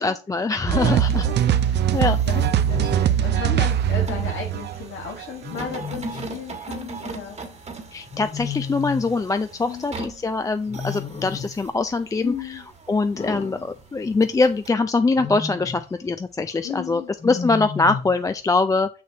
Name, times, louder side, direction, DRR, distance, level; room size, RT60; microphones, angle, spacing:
voice 1, 0.0-1.2 1.9-2.2 7.9-12.6 12.9-18.9, left 3 dB, 15° left, 9 dB, 0.3 m, -23 dB
voice 2, 0.7-7.4 9.6-9.9 12.2-12.7 16.6-17.1, left 6 dB, 80° left, -1 dB, 1.6 m, -34 dB
sound 1, 0.7-14.7, right 3 dB, 35° right, 1.4 m, -41 dB
sound 2, 0.7-5.6, right 10 dB, 60° right, 0.5 m, -21 dB
Wild animals, 0.8-1.2 2.4-3.1 5.4-6.3 8.1-9.2 10.7-11.6 13.2-14.3 15.0-15.9 17.2-18.2, left 5 dB, 35° left, 1.0 m, -33 dB
6.3 x 5.8 x 2.8 m, 0.34 s
cardioid pair, 90°, 20 cm